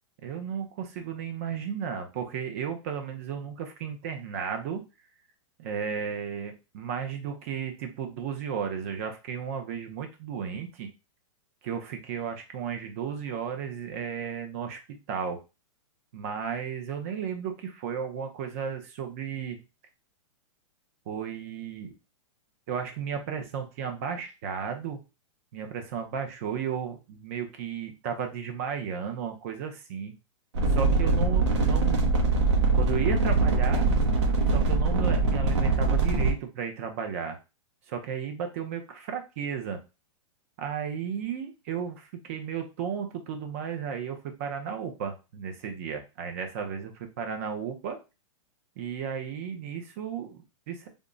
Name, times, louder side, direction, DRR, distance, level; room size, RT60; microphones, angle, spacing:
voice 1, 0.2-4.8 5.6-10.9 11.6-15.4 16.1-19.6 21.1-21.9 22.7-25.0 25.5-30.1 30.7-32.1 32.7-33.9 34.5-37.4 37.9-39.8 40.6-48.0 48.8-50.9, right 7 dB, 25° right, 5 dB, 0.5 m, -34 dB
sound 1, 30.5-36.3, right 3 dB, 60° right, 0.9 m, -23 dB
3.5 x 2.0 x 3.7 m, 0.28 s
hypercardioid pair, 175°, 17 cm